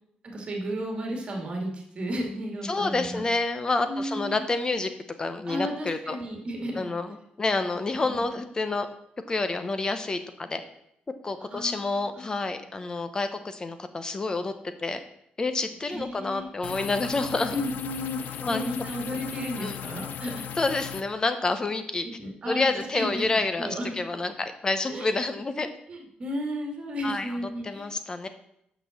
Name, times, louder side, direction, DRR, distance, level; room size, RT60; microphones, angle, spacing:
voice 1, 0.3-3.3 3.9-4.4 5.5-6.9 8.0-8.2 11.4-12.3 15.9-16.5 17.5-20.5 22.2-22.7 22.9-24.0 24.9-25.2 25.9-27.9, equal, 35° right, 0 dB, 2.1 m, -33 dB
voice 2, 2.6-4.9 5.2-6.2 6.8-8.9 9.3-10.6 11.2-14.5 14.8-15.0 15.4-17.5 18.4-18.6 19.6-19.8 20.6-22.1 22.5-25.7 27.0-27.4 27.6-28.3, left 3 dB, 25° left, 9 dB, 0.8 m, -28 dB
sound 1, 16.6-21.0, left 9 dB, 75° left, 0.5 m, -37 dB
6.3 x 5.9 x 7.1 m, 0.76 s
cardioid pair, 145°, 3 cm